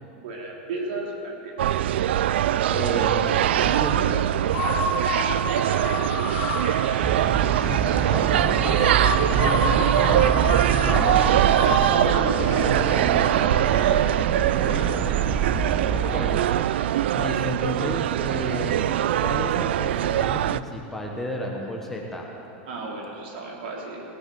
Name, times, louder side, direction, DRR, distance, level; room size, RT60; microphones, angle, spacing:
voice 1, 0.1-1.5 5.1-6.0 9.5-9.7 11.9-13.9 14.5-15.3 15.8-16.1 16.7-16.8 22.6-24.0, right 3 dB, 70° right, -1 dB, 3.0 m, -32 dB
sound 1, 1.6-20.6, right 11 dB, 85° right, 0.4 m, -23 dB
voice 2, 2.7-4.3 7.6-11.6 12.5-12.6 14.7-14.9 15.9-16.4 17.2-18.8 19.2-22.3, left 1 dB, 5° left, -1 dB, 1.1 m, -32 dB
sound 2, 3.3-3.9 4.5-13.1, left 3 dB, 45° left, 2.9 m, -31 dB
sound 3, 7.0-16.5, right 8 dB, 20° right, 0.4 m, -27 dB
18.0 x 6.5 x 7.7 m, 2.9 s
supercardioid pair, 160°, 6 cm